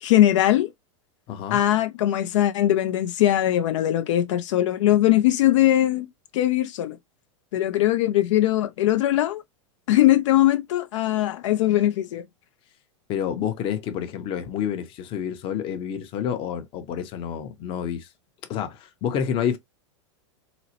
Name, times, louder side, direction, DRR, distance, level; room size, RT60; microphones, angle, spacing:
voice 1, 0.0-0.7 1.5-7.0 7.5-9.4 9.9-12.2, left 13 dB, 75° left, 0.5 m, -21 dB
voice 2, 1.3-1.6 13.1-18.1 18.5-19.6, left 8 dB, 35° left, 0.7 m, -29 dB
3.9 x 2.0 x 2.8 m
supercardioid pair, 135°, 16 cm